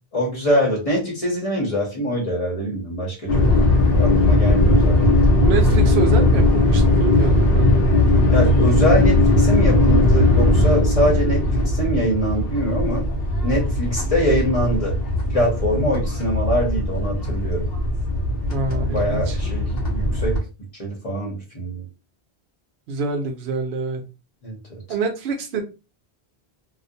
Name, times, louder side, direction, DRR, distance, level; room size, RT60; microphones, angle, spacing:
voice 1, 0.1-3.5 4.0-5.2 8.3-13.1 13.4-15.0 15.3-17.7 18.7-20.4 20.8-21.9 24.4-24.6, equal, 35° left, -2 dB, 0.8 m, -23 dB
sound 1, 3.3-20.4, left 2 dB, 70° left, 0.8 m, -18 dB
voice 2, 5.4-7.7 15.7-16.1 18.5-19.4 22.9-24.0 24.9-25.6, right 4 dB, 75° right, 4 dB, 0.9 m, -26 dB
2.4 x 2.0 x 2.6 m, 0.29 s
omnidirectional pair, 1.1 m